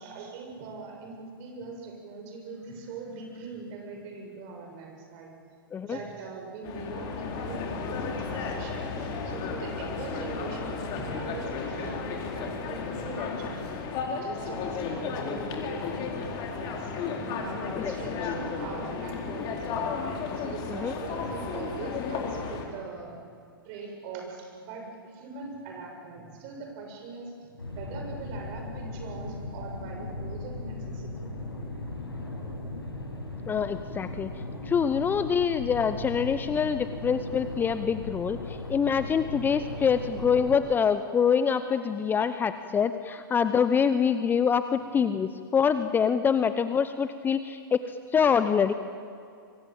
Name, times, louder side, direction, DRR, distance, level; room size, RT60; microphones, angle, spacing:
voice 1, 0.0-5.3 5.9-8.9 9.2-13.7 14.1-16.3 16.6-16.9 17.3-19.9 20.2-23.1 23.6-31.1, right 4 dB, 40° right, 2 dB, 7.1 m, -41 dB
sound 1, 6.6-22.7, left 5 dB, 35° left, 4.3 m, -33 dB
sound 2, 27.6-40.6, left 2 dB, 85° left, 6.3 m, -37 dB
voice 2, 33.5-48.7, left 7 dB, 15° left, 11 dB, 0.8 m, -25 dB
25.5 x 23.0 x 9.1 m, 2.3 s
figure-of-eight pair, 110°, 12 cm